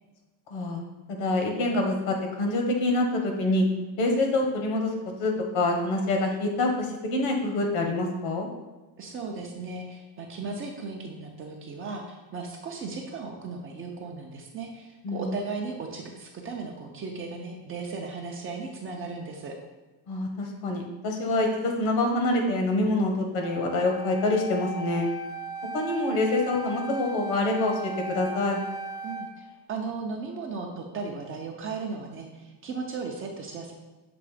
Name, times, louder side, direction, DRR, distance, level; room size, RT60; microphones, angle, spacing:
voice 1, 0.5-0.8 1.1-3.7 4.0-4.9 5.2-8.5 15.0-15.3 20.1-25.1 25.7-28.6, left 2 dB, 70° left, 2 dB, 1.3 m, -26 dB
voice 2, 9.0-19.5 29.0-33.7, right 4 dB, 25° right, 1 dB, 0.5 m, -36 dB
Wind instrument woodwind instrument, 23.4-29.3, right 2 dB, 35° left, 0.5 m, -36 dB
6.9 x 3.0 x 4.9 m, 1.2 s
cardioid pair, 170°, 49 cm